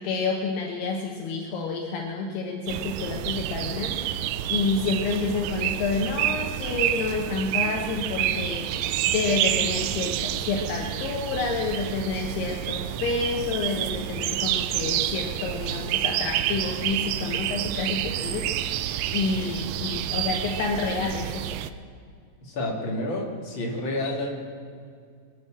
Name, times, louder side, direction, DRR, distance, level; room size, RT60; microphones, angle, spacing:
voice 1, 0.0-4.0 4.5-8.7 9.1-18.7 19.1-21.6, left 4 dB, 75° left, 2 dB, 2.9 m, -29 dB
sound 1, 2.7-21.7, right 12 dB, 85° right, 2.3 m, -29 dB
voice 2, 22.4-24.4, left 1 dB, 40° left, 0 dB, 1.8 m, -29 dB
23.0 x 8.0 x 7.4 m, 2.2 s
omnidirectional pair, 5.0 m